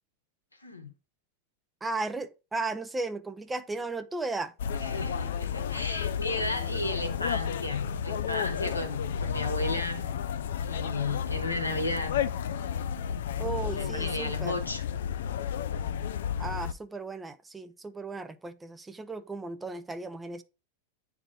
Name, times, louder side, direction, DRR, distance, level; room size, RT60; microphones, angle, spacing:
voice 1, 0.6-0.9 4.8-10.1 10.6-12.2 13.8-14.8, left 2 dB, 90° left, 1.5 m, -34 dB
voice 2, 1.8-4.5 13.4-14.5 16.4-20.4, right 3 dB, 10° right, 0.6 m, -35 dB
sound 1, 4.6-16.7, left 8 dB, 65° left, 0.4 m, -32 dB
9.8 x 3.4 x 3.9 m
figure-of-eight pair, 90°, 0 cm